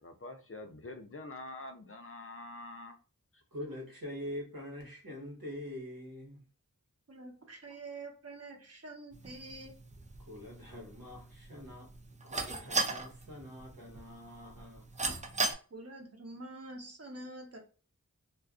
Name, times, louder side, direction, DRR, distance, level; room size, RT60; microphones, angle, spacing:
voice 1, 0.0-3.0, left 2 dB, 40° left, 0.5 m, -46 dB
voice 2, 3.5-6.4 10.2-11.9 12.2-14.8, left 1 dB, 80° right, 1.2 m, -44 dB
voice 3, 7.1-9.7 15.7-17.6, right 2 dB, 45° right, 0.8 m, -46 dB
sound 1, 9.1-15.5, right 3 dB, 20° right, 0.4 m, -38 dB
2.4 x 2.4 x 2.4 m
wide cardioid pair, 50°, 35 cm